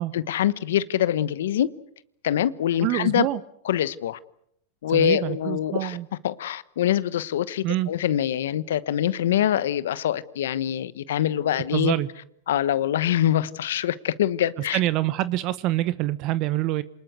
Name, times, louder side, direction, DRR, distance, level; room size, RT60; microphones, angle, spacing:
voice 1, 0.1-1.7 2.2-3.3 3.6-4.2 4.8-6.0 6.2-11.9 12.5-14.8, left 11 dB, 80° left, 1.0 m, -24 dB
voice 2, 2.8-3.4 4.9-6.1 7.6-7.9 11.7-12.1 14.7-16.8, right 16 dB, 50° right, 1.0 m, -25 dB
27.5 x 20.0 x 8.1 m
hypercardioid pair, 115°, 0 cm